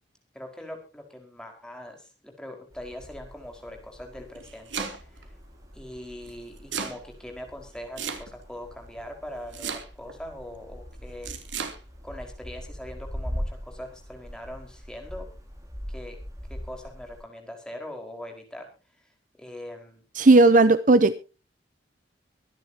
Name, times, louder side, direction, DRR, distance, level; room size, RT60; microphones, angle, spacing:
voice 1, 0.3-5.3 5.7-11.4 12.0-15.3 15.9-16.2 16.5-18.7 19.0-19.1 19.4-20.0, left 1 dB, 5° left, 3 dB, 4.7 m, -41 dB
sound 1, 2.7-17.2, equal, 15° right, 5.6 m, -41 dB
Domestic sounds home sounds, 4.2-5.2 6.3-7.0 8.0-8.6 9.5-10.2 11.2-11.8, right 6 dB, 90° right, 3.1 m, -34 dB
voice 2, 20.2-21.2, right 2 dB, 45° right, 14 dB, 0.7 m, -16 dB
24.5 x 10.5 x 2.8 m, 0.32 s
head